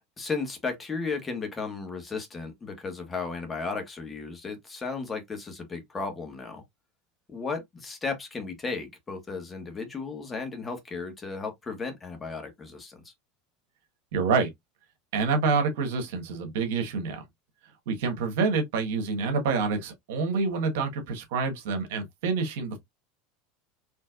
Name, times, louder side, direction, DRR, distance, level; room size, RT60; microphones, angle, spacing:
voice 1, 0.2-6.6 7.3-13.1, left 4 dB, 20° left, 1.5 m, -34 dB
voice 2, 14.1-14.5 15.1-17.2 17.9-22.8, right 4 dB, 80° right, 1.5 m, -27 dB
4.5 x 3.2 x 2.5 m
supercardioid pair, 125°, 0 cm